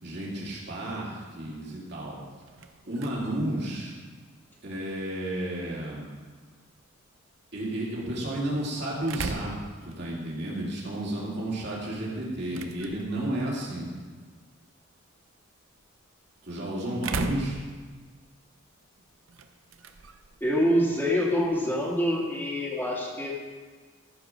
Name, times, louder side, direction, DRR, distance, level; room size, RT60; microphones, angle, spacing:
voice 1, 0.0-2.2 2.9-3.9 4.6-6.1 7.5-13.9 16.4-17.6, right 1 dB, 55° right, -5 dB, 2.8 m, -32 dB
sound 1, 2.2-22.0, right 4 dB, 80° right, 0.7 m, -43 dB
voice 2, 20.4-23.3, equal, 10° left, -4 dB, 1.6 m, -25 dB
14.5 x 5.2 x 6.2 m, 1.5 s
head